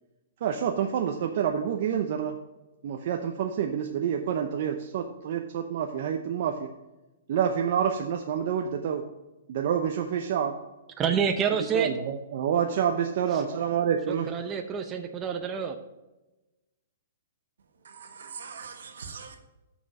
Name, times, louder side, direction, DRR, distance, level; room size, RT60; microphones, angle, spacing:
voice 1, 0.4-2.4 2.8-6.7 7.3-9.0 9.5-10.6 11.5-14.3, right 8 dB, 55° right, 3 dB, 0.7 m, -28 dB
voice 2, 11.0-11.9 14.3-15.8, right 7 dB, 20° right, 6 dB, 0.6 m, -27 dB
voice 3, 17.8-19.4, right 6 dB, 80° right, 5 dB, 1.3 m, -42 dB
6.1 x 5.9 x 6.5 m, 1.0 s
hypercardioid pair, 145°, 0 cm